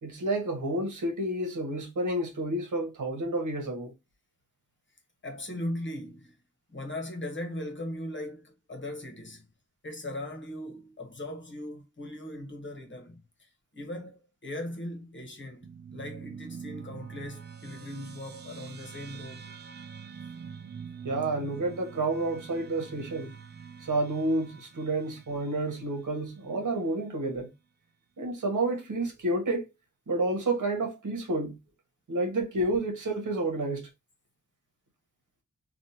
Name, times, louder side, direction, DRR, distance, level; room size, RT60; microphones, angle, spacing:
voice 1, 0.0-3.9 21.0-23.3 23.8-27.5 28.2-29.6 30.1-31.6 32.1-33.9, right 2 dB, 70° right, 1.2 m, -30 dB
voice 2, 5.2-6.4 6.7-9.5 9.8-19.5, left 1 dB, 35° left, 1.0 m, -39 dB
sound 1, 15.6-26.4, right 6 dB, 35° right, 0.4 m, -45 dB
3.4 x 2.4 x 2.8 m
wide cardioid pair, 110°, 31 cm